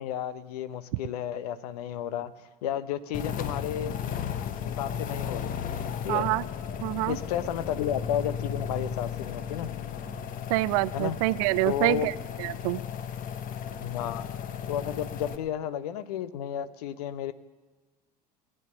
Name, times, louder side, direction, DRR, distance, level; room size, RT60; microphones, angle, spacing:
voice 1, 0.0-4.0 4.6-5.6 6.0-6.3 7.1-9.7 10.9-11.2 11.6-12.1 13.8-14.3 14.7-17.3, left 10 dB, 70° left, 15 dB, 0.8 m, -32 dB
sound 1, 3.1-15.4, left 8 dB, 40° left, 1.0 m, -35 dB
voice 2, 6.1-6.4 6.8-7.2 10.5-12.1 12.4-12.8, right 21 dB, 60° right, 20 dB, 0.4 m, -26 dB
19.5 x 9.1 x 7.0 m, 1.3 s
hypercardioid pair, 70°, 21 cm